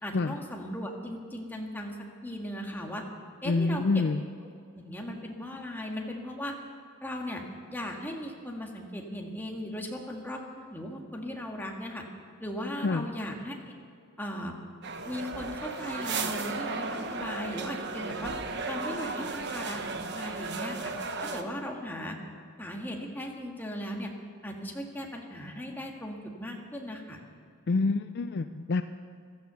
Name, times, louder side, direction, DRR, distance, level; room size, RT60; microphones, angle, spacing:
voice 1, 0.0-3.1 3.4-4.0 4.7-6.5 7.0-7.4 7.7-12.0 12.4-13.7 14.2-14.5 15.0-18.3 18.7-20.8 21.3-22.2 22.6-24.1 24.4-27.2, equal, 10° left, 0 dB, 1.7 m, -37 dB
voice 2, 3.5-4.2 12.8-13.1 27.7-28.8, left 3 dB, 50° left, 10 dB, 0.4 m, -27 dB
sound 1, 14.8-21.4, right 4 dB, 50° right, 1.1 m, -35 dB
15.5 x 13.0 x 6.9 m, 2.3 s
head